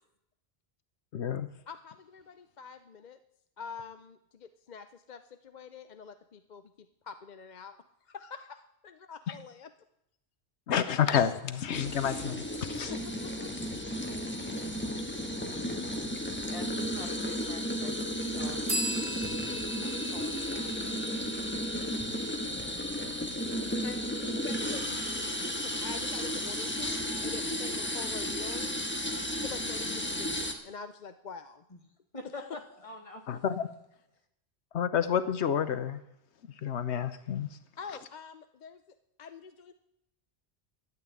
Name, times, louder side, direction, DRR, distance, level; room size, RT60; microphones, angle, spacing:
voice 1, 1.1-1.5 10.7-12.9 33.3-33.7 34.7-36.0 36.6-37.5, left 8 dB, 85° left, 12 dB, 1.1 m, -29 dB
voice 2, 1.7-3.2 3.6-7.8 8.1-9.7 12.9-13.5 23.8-25.4 25.6-28.7 29.3-31.6 32.4-32.6 37.8-38.8 39.2-39.7, left 6 dB, 50° left, 10 dB, 0.7 m, -45 dB
sound 1, 11.7-30.5, equal, 10° left, 1.4 m, -33 dB
voice 3, 16.5-18.9 19.8-21.1 31.7-31.8 32.1-33.4, left 2 dB, 30° left, 4 dB, 1.8 m, -47 dB
sound 2, 18.7-22.2, right 1 dB, 80° right, 2.5 m, -38 dB
12.5 x 8.7 x 9.7 m, 0.80 s
omnidirectional pair, 1.1 m